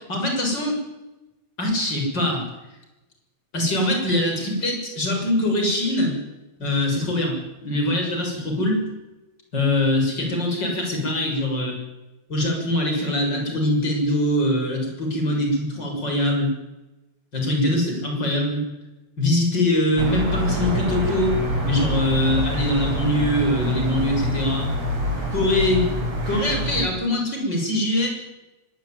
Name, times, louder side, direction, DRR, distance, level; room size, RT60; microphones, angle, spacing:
voice 1, 0.1-0.8 1.6-2.4 3.5-6.2 6.6-8.8 9.5-11.8 12.3-16.5 17.3-18.6 19.2-21.4 21.6-24.7 25.3-25.9 26.3-28.1, left 1 dB, 35° left, 2 dB, 7.5 m, -23 dB
sound 1, 20.0-26.8, equal, 60° right, 6.9 m, -26 dB
24.0 x 19.0 x 9.3 m, 1.0 s
omnidirectional pair, 3.4 m